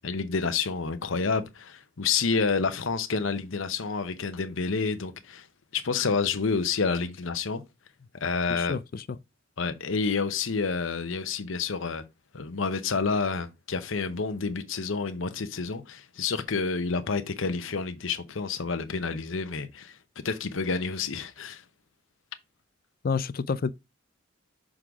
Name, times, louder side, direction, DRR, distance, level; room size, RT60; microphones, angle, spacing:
voice 1, 0.0-5.5 5.7-7.6 8.1-8.8 9.6-12.0 12.3-20.0 20.2-21.6, left 4 dB, 75° left, 0.8 m, -29 dB
voice 2, 8.5-9.0 23.0-23.7, left 5 dB, 45° left, 0.4 m, -29 dB
6.4 x 3.8 x 4.6 m
head